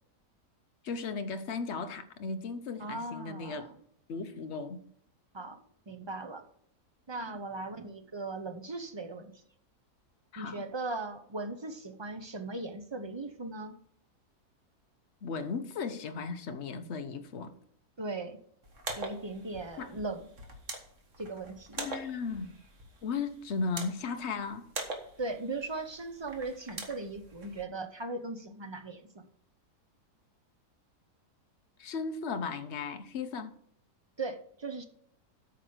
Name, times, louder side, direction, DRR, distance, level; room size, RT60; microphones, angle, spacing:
voice 1, 0.8-3.7 4.1-4.9 10.3-10.6 15.2-17.6 19.8-19.9 21.8-22.6 23.0-24.7 31.8-33.5, left 4 dB, 50° left, 1.1 m, -36 dB
voice 2, 2.8-3.7 5.3-6.5 7.1-9.3 10.4-13.8 18.0-18.4 19.0-20.3 21.2-21.8 25.2-29.3 34.2-34.8, right 3 dB, 35° right, 0.4 m, -38 dB
sound 1, 18.6-27.6, right 3 dB, 50° right, 1.8 m, -44 dB
9.0 x 5.9 x 6.6 m
omnidirectional pair, 1.7 m